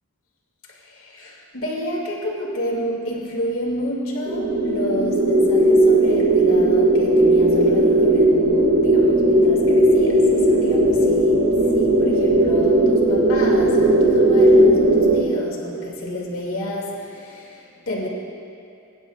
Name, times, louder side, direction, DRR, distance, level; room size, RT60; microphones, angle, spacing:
voice 1, 0.8-18.1, left 1 dB, 65° left, -3 dB, 2.5 m, -30 dB
sound 1, 4.3-15.2, right 1 dB, 65° right, 2.1 m, -16 dB
22.5 x 10.5 x 2.4 m, 2.9 s
head